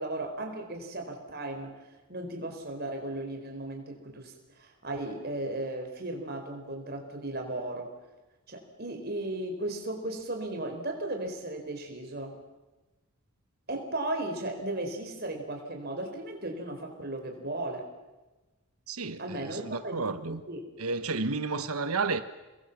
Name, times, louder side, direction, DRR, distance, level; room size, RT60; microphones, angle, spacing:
voice 1, 0.0-1.7 2.1-7.9 8.5-12.3 13.7-17.9 19.2-20.0 20.2-20.6, right 1 dB, 45° right, 4.8 m, -36 dB
voice 2, 18.9-20.4 20.8-22.2, right 4 dB, 85° right, 1.2 m, -31 dB
29.5 x 21.5 x 7.4 m
head